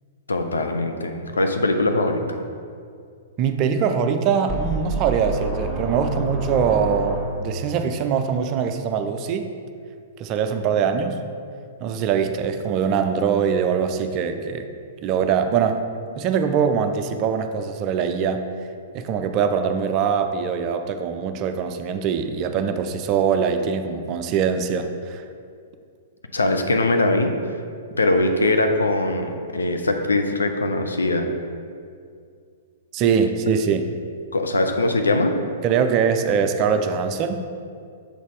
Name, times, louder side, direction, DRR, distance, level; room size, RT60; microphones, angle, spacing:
voice 1, 0.3-2.4 26.3-27.3 28.0-31.3 34.3-35.3, left 2 dB, 75° left, 5 dB, 0.6 m, -21 dB
voice 2, 3.4-9.5 10.2-11.2 11.8-14.7 15.0-15.8 16.1-18.4 18.9-25.2 32.9-33.9 35.6-37.4, right 6 dB, 35° right, 7 dB, 0.5 m, -22 dB
sound 1, 4.5-7.7, right 3 dB, 5° left, 1.5 m, -28 dB
6.7 x 4.0 x 4.7 m, 2.3 s
figure-of-eight pair, 110°, 0 cm